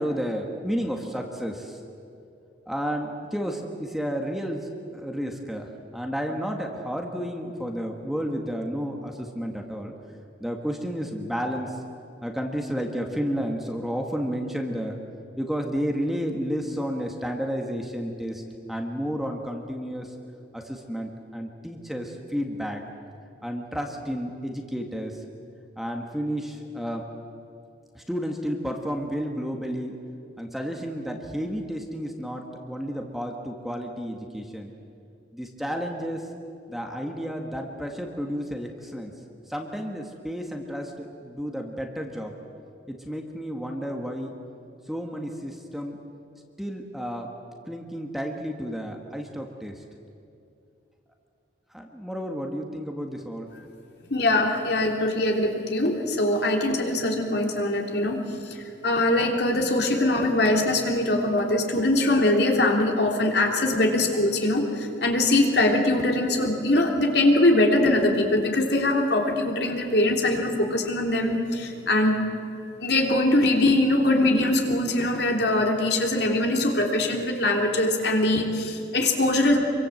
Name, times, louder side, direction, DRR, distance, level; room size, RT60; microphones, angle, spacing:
voice 1, 0.0-1.8 2.7-9.9 10.4-11.8 12.2-15.0 15.4-18.4 18.7-20.1 20.5-22.8 23.4-25.2 25.8-27.1 28.0-29.9 30.4-34.7 35.3-36.3 36.7-39.1 39.5-42.3 42.9-44.3 44.9-46.0 46.6-47.3 47.7-49.8 51.7-53.7, equal, ahead, 2 dB, 1.7 m, -31 dB
voice 2, 54.1-72.2 72.8-79.6, left 1 dB, 60° left, 2 dB, 3.2 m, -22 dB
26.5 x 24.0 x 7.9 m, 2.6 s
head